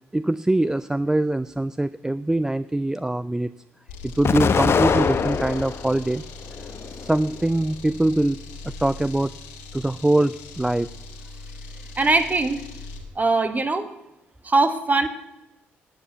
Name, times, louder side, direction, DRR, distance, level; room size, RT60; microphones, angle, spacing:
voice 1, 0.1-3.5 4.0-6.2 6.9-8.4 8.6-9.3 9.7-10.9, right 1 dB, 10° right, 15 dB, 0.4 m, -23 dB
sound 1, 3.9-13.1, left 2 dB, 90° left, 2.0 m, -40 dB
Explosion, 4.2-5.9 6.4-7.3, left 6 dB, 45° left, 0.9 m, -23 dB
voice 2, 12.0-12.6 13.1-13.9 14.4-15.1, right 3 dB, 30° right, 8 dB, 1.6 m, -21 dB
8.8 x 8.8 x 8.2 m, 0.90 s
hypercardioid pair, 55°, 6 cm